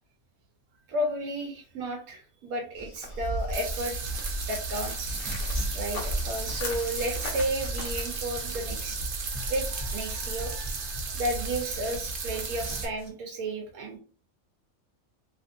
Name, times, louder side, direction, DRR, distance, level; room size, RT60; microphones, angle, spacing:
voice 1, 0.9-4.0 4.5-5.2 5.7-9.0 9.5-9.6 9.9-10.5 11.1-14.0, right 1 dB, 90° right, 3 dB, 1.1 m, -32 dB
sound 1, 2.8-8.2, equal, 55° left, 0.6 m, -36 dB
sound 2, 3.5-12.9, right 4 dB, 70° right, 1.1 m, -34 dB
sound 3, 4.0-13.1, right 1 dB, 45° right, 0.3 m, -41 dB
2.9 x 2.6 x 2.5 m, 0.41 s
omnidirectional pair, 1.5 m